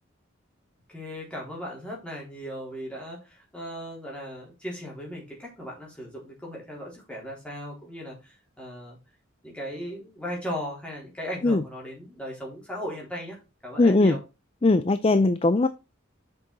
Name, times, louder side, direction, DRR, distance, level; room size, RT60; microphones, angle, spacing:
voice 1, 0.9-9.0 9.4-14.2, equal, 5° left, 3.9 m, -37 dB
voice 2, 13.8-14.2 14.6-15.7, left 2 dB, 30° left, 0.4 m, -20 dB
7.5 x 6.2 x 4.1 m
head